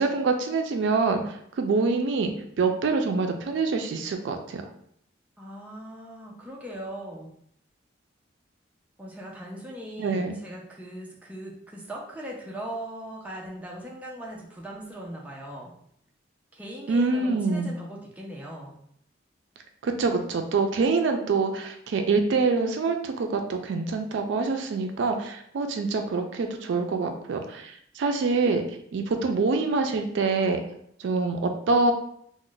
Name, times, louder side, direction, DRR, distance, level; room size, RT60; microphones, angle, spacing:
voice 1, 0.0-4.6 10.0-10.4 16.9-17.7 19.8-30.6 31.0-31.9, right 4 dB, 75° right, 5 dB, 0.3 m, -25 dB
voice 2, 5.4-7.3 9.0-15.7 16.5-18.8, right 1 dB, 10° right, -3 dB, 0.4 m, -39 dB
2.4 x 2.1 x 3.8 m, 0.69 s
head